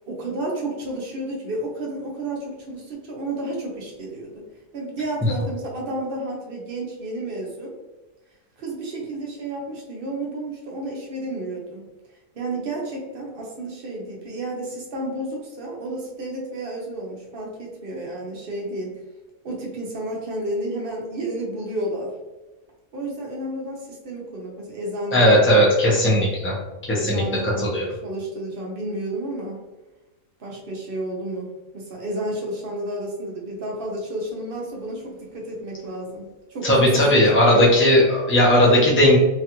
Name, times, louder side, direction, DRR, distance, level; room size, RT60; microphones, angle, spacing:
voice 1, 0.1-4.4 4.7-7.7 8.6-11.8 12.3-18.9 19.4-22.1 22.9-25.6 26.9-29.6 30.4-37.9 38.6-39.0, right 1 dB, 55° right, -2 dB, 0.7 m, -31 dB
voice 2, 25.1-26.5 26.9-27.8 36.6-39.2, equal, 15° left, -5 dB, 0.5 m, -17 dB
3.1 x 2.3 x 2.8 m, 1.1 s
omnidirectional pair, 1.4 m